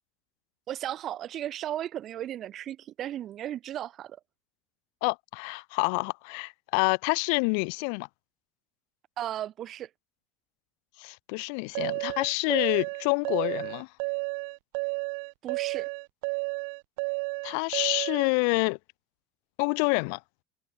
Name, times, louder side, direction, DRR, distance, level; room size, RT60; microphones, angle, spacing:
voice 1, 0.7-4.2 9.2-9.9 15.4-15.9, right 11 dB, 45° right, 5.9 m, -35 dB
voice 2, 5.0-8.1 11.0-13.9 17.4-18.8 19.6-20.2, left 38 dB, 70° left, 2.4 m, -27 dB
sound 1, 11.7-18.3, right 37 dB, 70° right, 5.1 m, -32 dB
supercardioid pair, 105°, 0 cm